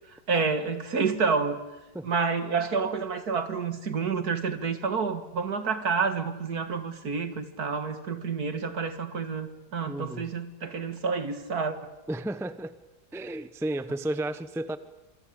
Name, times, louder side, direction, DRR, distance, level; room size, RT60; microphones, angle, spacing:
voice 1, 0.3-1.6 2.0-11.8, right 5 dB, 60° right, 9 dB, 2.5 m, -29 dB
voice 2, 9.9-10.3 12.1-12.8 13.1-14.8, right 1 dB, ahead, 12 dB, 0.8 m, -32 dB
27.0 x 24.0 x 8.7 m, 1.0 s
omnidirectional pair, 1.8 m